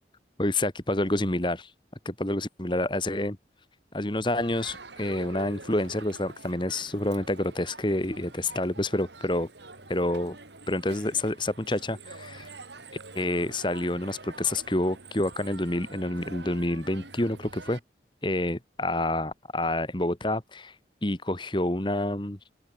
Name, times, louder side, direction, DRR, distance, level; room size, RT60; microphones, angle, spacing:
voice 1, 0.4-1.7 2.1-3.4 3.9-9.5 9.9-10.4 10.7-12.5 13.2-17.8 18.2-20.7 21.0-22.4, left 1 dB, 25° left, 1.7 m, -28 dB
Crowd, 4.4-17.8, right 3 dB, 80° right, 5.2 m, -46 dB
open air
head